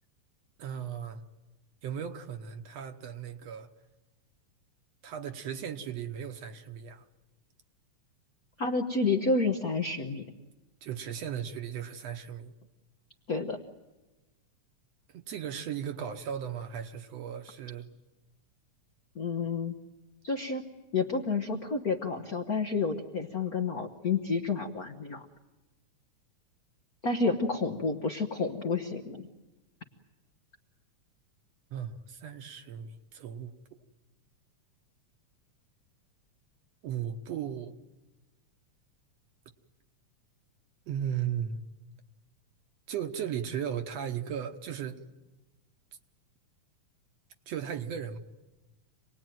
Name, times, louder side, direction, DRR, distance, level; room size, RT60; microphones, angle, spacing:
voice 1, 0.6-1.2 1.8-3.7 5.0-7.0 10.8-12.5 15.1-17.9 31.7-33.8 36.8-37.7 40.9-41.6 42.9-45.0 47.5-48.2, right 8 dB, 65° right, 2.0 m, -36 dB
voice 2, 8.6-10.2 13.3-13.6 19.1-19.7 20.2-20.6 20.9-25.2 27.0-29.3, left 4 dB, 65° left, 0.9 m, -30 dB
27.5 x 20.0 x 9.2 m
omnidirectional pair, 3.5 m